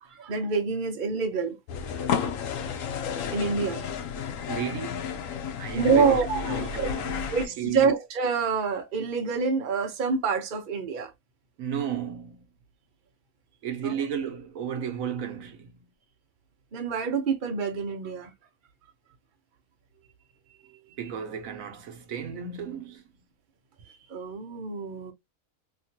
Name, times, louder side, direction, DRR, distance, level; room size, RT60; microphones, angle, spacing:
voice 1, 0.0-1.6 3.3-3.8 5.7-6.9 7.3-11.1 13.8-13.9 16.7-18.3 24.1-25.1, right 5 dB, 40° right, 0.8 m, -27 dB
sound 1, 1.7-7.5, left 7 dB, 70° left, 1.0 m, -31 dB
voice 2, 4.4-5.3 5.6-7.9 11.6-12.4 13.6-15.8 21.0-23.1, right 8 dB, 70° right, 1.1 m, -34 dB
3.0 x 2.7 x 2.7 m
omnidirectional pair, 1.5 m